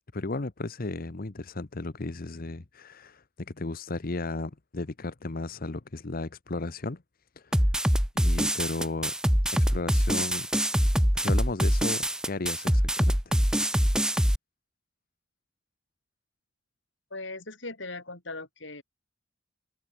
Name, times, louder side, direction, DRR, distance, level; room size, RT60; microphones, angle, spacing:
voice 1, 0.1-7.0 7.4-7.7 8.2-9.1 9.5-10.5 11.1-13.2, left 2 dB, 50° left, 1.0 m, -35 dB
sound 1, 7.5-14.4, equal, 5° right, 1.1 m, -24 dB
voice 2, 17.1-18.8, left 2 dB, 70° left, 6.4 m, -39 dB
head